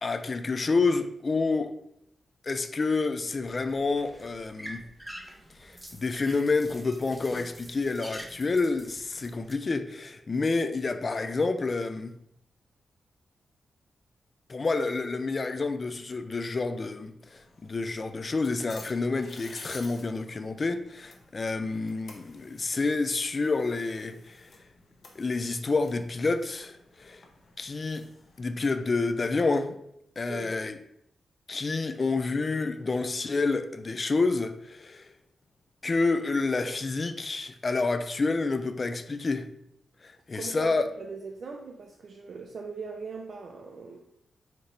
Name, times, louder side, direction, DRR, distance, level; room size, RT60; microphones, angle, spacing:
voice 1, 0.0-1.7 2.4-4.8 5.6-12.1 14.5-24.5 25.2-27.2 27.6-28.1 28.4-29.8 30.2-30.8 31.5-35.1 35.8-39.5 40.0-40.8, left 3 dB, 30° left, 0.3 m, -28 dB
sound 1, 3.3-9.5, equal, 5° right, 0.6 m, -46 dB
sound 2, 17.2-28.7, left 3 dB, 50° left, 0.8 m, -53 dB
voice 2, 40.3-44.1, right 4 dB, 50° right, 0.4 m, -40 dB
4.3 x 3.9 x 3.1 m
wide cardioid pair, 145°, 0 cm